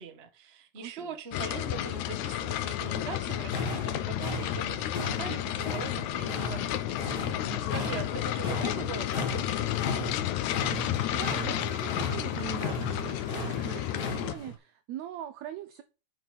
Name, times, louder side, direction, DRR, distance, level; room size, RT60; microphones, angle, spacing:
voice 1, 0.0-9.8, right 5 dB, 60° right, 0.6 m, -42 dB
voice 2, 0.8-1.1 7.4-7.9 10.9-15.8, right 12 dB, 75° right, 1.7 m, -42 dB
sound 1, 1.3-14.3, left 13 dB, 75° left, 2.0 m, -31 dB
sound 2, 3.3-14.6, left 1 dB, 40° left, 1.9 m, -38 dB
Fill (with liquid), 9.2-9.3 9.5-14.3, right 4 dB, 40° right, 2.1 m, -50 dB
8.9 x 5.1 x 5.7 m
omnidirectional pair, 3.7 m